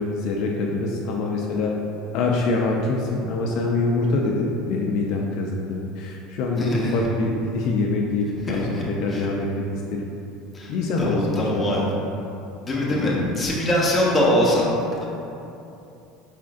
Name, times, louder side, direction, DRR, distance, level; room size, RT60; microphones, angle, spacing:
voice 1, 0.0-1.7 2.1-9.5 9.7-10.1 10.7-11.6 12.9-13.3, left 3 dB, 60° left, -1 dB, 0.4 m, -25 dB
voice 2, 6.6-6.9 8.5-8.8 9.1-9.3 10.5-10.7 11.0-11.9 12.6-14.7, left 1 dB, 15° left, -5 dB, 0.8 m, -23 dB
4.9 x 3.6 x 2.5 m, 2.7 s
cardioid pair, 150°, 0 cm